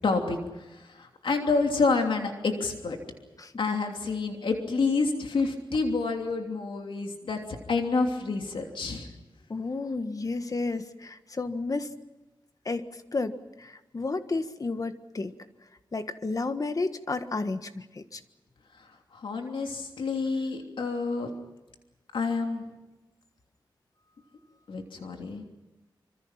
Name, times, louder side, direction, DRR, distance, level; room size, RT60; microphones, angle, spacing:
voice 1, 0.0-3.0 3.6-7.4 7.7-9.1 19.1-21.3 22.1-22.6 24.7-25.4, left 4 dB, 80° left, 3 dB, 3.0 m, -28 dB
voice 2, 9.5-11.9 12.6-15.3 15.9-18.2, left 3 dB, 45° left, 9 dB, 1.5 m, -32 dB
26.0 x 26.0 x 6.0 m, 1.1 s
wide cardioid pair, 90°, 9 cm